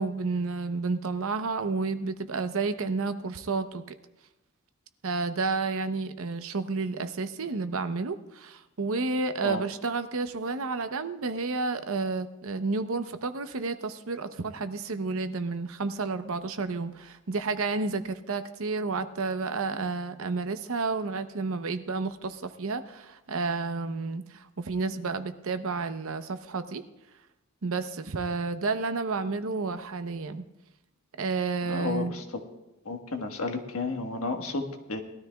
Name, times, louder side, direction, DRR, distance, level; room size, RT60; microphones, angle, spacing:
voice 1, 0.0-3.8 5.0-26.8 27.6-30.4 31.2-32.1, right 4 dB, 65° right, 10 dB, 0.8 m, -31 dB
voice 2, 31.6-32.2 32.8-35.0, left 3 dB, 75° left, 4 dB, 1.4 m, -32 dB
20.0 x 13.0 x 2.3 m, 0.96 s
head